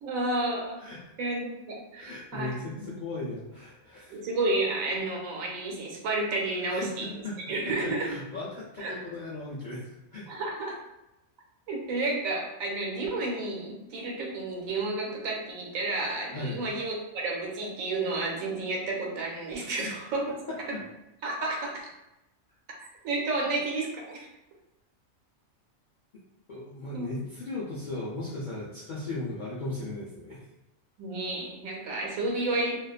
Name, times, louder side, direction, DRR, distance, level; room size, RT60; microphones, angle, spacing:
voice 1, 0.0-0.8 1.2-2.8 4.1-7.1 7.5-8.1 8.8-8.9 10.3-10.8 11.7-20.2 21.2-21.9 23.0-24.3 26.9-27.1 31.0-32.8, right 2 dB, 85° right, -1 dB, 1.1 m, -31 dB
voice 2, 1.9-4.2 6.7-7.4 7.7-10.4 16.3-16.6 19.6-19.9 20.5-20.8 26.5-30.4, left 2 dB, 65° left, -8 dB, 0.4 m, -37 dB
2.5 x 2.2 x 2.3 m, 0.91 s
omnidirectional pair, 1.4 m